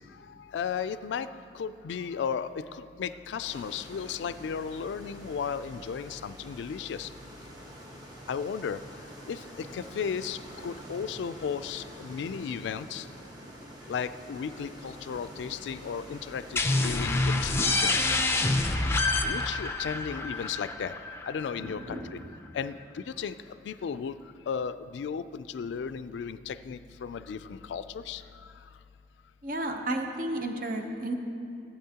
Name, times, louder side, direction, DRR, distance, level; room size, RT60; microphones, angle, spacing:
voice 1, 0.3-7.1 8.3-8.8 9.3-13.1 13.9-18.0 19.2-20.9 21.2-22.2 22.5-23.3 23.6-24.2 24.5-28.2, left 6 dB, 80° left, 14 dB, 0.3 m, -35 dB
sound 1, 3.4-17.2, equal, 20° right, 1.1 m, -47 dB
sound 2, 16.6-22.0, left 2 dB, 15° left, 0.4 m, -27 dB
voice 2, 21.6-22.2 29.4-31.1, right 1 dB, 50° right, 4 dB, 0.7 m, -33 dB
16.0 x 8.6 x 2.8 m, 2.6 s
head